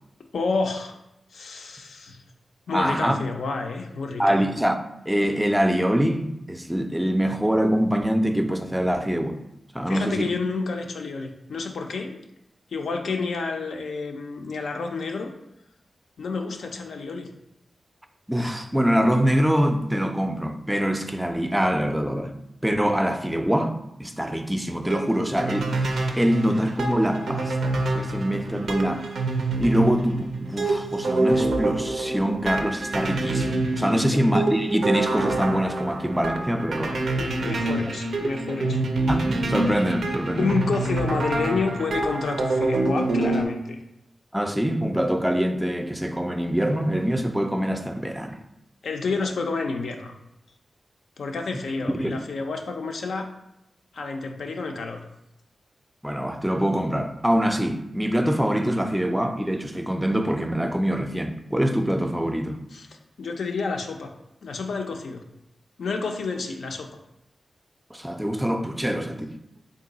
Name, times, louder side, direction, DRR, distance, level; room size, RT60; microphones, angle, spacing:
voice 1, 0.3-1.0 1.3-2.2 2.7-4.4 9.9-12.2 12.7-15.3 16.2-17.3 33.9-34.3 37.1-38.8 40.4-43.8 48.8-50.2 51.2-53.3 53.9-55.0 62.7-62.9 63.2-64.1 64.4-65.2 65.8-66.9, left 4 dB, 80° left, 0.4 m, -29 dB
voice 2, 2.7-3.2 4.2-4.8 5.1-9.4 9.7-10.3 18.3-22.3 22.6-29.1 29.6-37.0 39.1-40.5 44.3-48.4 52.0-52.2 56.0-62.6 67.9-69.3, equal, 10° right, 0.4 m, -24 dB
sound 1, 24.8-43.5, right 2 dB, 85° right, 0.4 m, -26 dB
3.6 x 2.3 x 3.8 m
cardioid pair, 60°, 0 cm